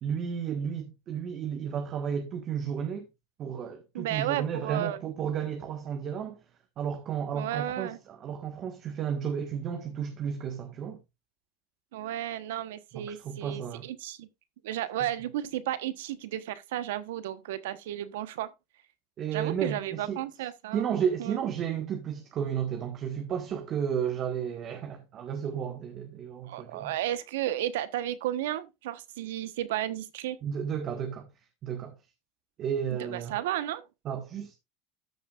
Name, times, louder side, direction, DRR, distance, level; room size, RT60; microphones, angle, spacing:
voice 1, 0.0-3.1 3.4-6.4 6.8-11.0 12.9-13.9 19.2-20.2 20.7-26.9 30.4-31.3 31.6-31.9 32.6-33.3 34.0-34.5, right 8 dB, 40° right, 1.6 m, -33 dB
voice 2, 3.9-5.0 7.3-8.0 11.9-14.3 14.6-18.5 19.3-20.9 21.2-21.4 26.4-30.4 33.0-33.8, right 13 dB, 85° right, 1.2 m, -33 dB
13.5 x 6.6 x 2.5 m
supercardioid pair, 125°, 0 cm